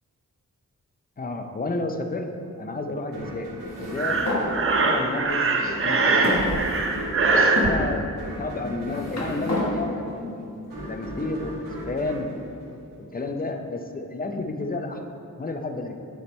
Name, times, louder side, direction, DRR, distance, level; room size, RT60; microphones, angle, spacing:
voice 1, 1.2-2.3 2.6-3.5 3.8-4.2 4.8-6.6 7.2-10.6 10.9-12.5 13.1-15.0 15.4-15.9, left 2 dB, 30° left, 5 dB, 0.5 m, -31 dB
sound 1, 3.1-13.3, equal, 90° right, 1.4 m, -38 dB
sound 2, 3.6-4.5 5.3-5.4 6.2-7.1 7.6-7.8 8.6-9.7, left 2 dB, 55° left, 1.3 m, -30 dB
Breathing, 4.0-7.7, right 3 dB, 40° right, 0.6 m, -22 dB
9.3 x 3.3 x 4.2 m, 2.6 s
wide cardioid pair, 85°, 32 cm